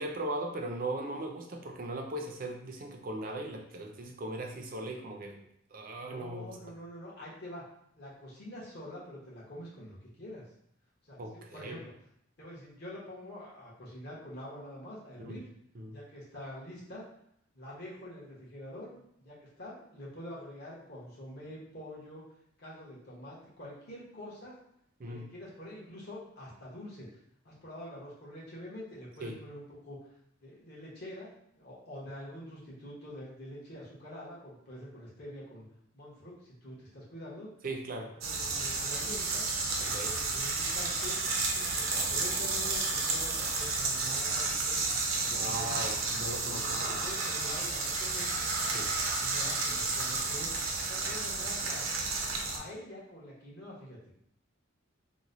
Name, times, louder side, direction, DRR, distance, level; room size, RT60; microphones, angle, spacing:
voice 1, 0.0-5.5 5.7-6.6 11.2-11.8 15.2-15.4 15.7-15.9 25.0-25.3 29.2-29.4 37.6-38.1 39.8-40.1 45.3-47.0 48.7-48.9, right 1 dB, 45° right, 2 dB, 0.5 m, -38 dB
voice 2, 6.0-7.6 8.0-10.4 11.0-11.9 12.4-15.5 15.9-17.1 17.5-22.2 22.6-24.6 25.1-27.2 27.4-30.0 30.4-31.3 31.5-35.6 35.9-37.5 38.2-39.4 39.8-41.2 41.5-45.8 46.3-48.4 49.0-50.6 50.9-51.8 52.5-54.1, left 1 dB, 50° left, -5 dB, 1.1 m, -46 dB
sound 1, 38.2-52.6, right 3 dB, 80° right, 0.7 m, -31 dB
3.0 x 2.2 x 3.9 m, 0.71 s
head